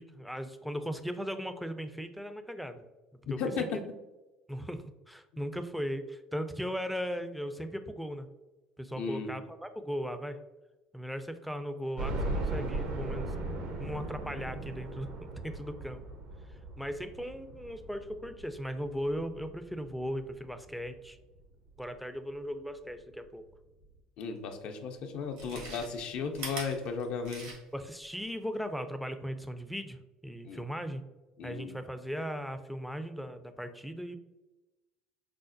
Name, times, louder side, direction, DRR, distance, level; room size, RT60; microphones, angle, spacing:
voice 1, 0.0-2.8 3.3-3.7 4.5-8.3 8.8-10.4 10.9-13.3 13.8-15.1 15.4-16.0 16.8-21.2 21.8-23.5 25.6-25.7 27.7-31.0 31.4-34.2, equal, ahead, 9 dB, 0.4 m, -38 dB
voice 2, 3.3-3.8 9.0-9.4 24.2-27.6 30.4-30.6 31.4-31.8, left 5 dB, 55° left, 5 dB, 0.5 m, -35 dB
sound 1, 12.0-20.9 21.4-21.5 21.8-21.9 23.1-23.2 23.5-23.6, right 2 dB, 65° right, 0.6 m, -38 dB
Chewing mastication, 24.5-24.6 25.2-27.9 28.2-28.3, right 3 dB, 80° right, 1.2 m, -43 dB
4.8 x 2.0 x 2.5 m, 1.1 s
hypercardioid pair, 75°, 2 cm